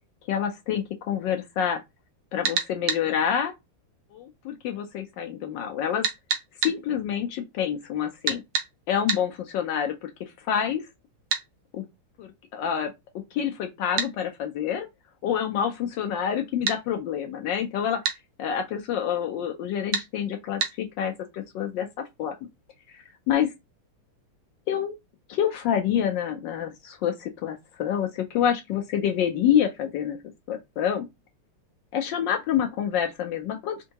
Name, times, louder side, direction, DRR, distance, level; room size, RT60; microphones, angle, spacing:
voice 1, 0.3-1.8 2.3-3.5 4.1-6.0 6.6-8.4 8.9-10.1 10.5-10.8 11.7-11.8 12.2-12.9 13.3-14.9 15.2-15.7 16.0-18.0 18.4-21.9 22.2-22.3 22.9-23.0 23.3-23.5 24.7-24.9 25.3-30.2 30.5-31.0 31.9-33.9, left 9 dB, 75° left, 1.1 m, -27 dB
sound 1, 2.4-3.0 6.0-6.8 8.3-8.7 9.1-9.2 11.3-11.5 14.0-14.1 16.7-16.8 18.0-18.2 19.9-20.1 20.6-20.7, right 6 dB, 65° right, 1.3 m, -26 dB
4.4 x 2.7 x 2.8 m
omnidirectional pair, 2.4 m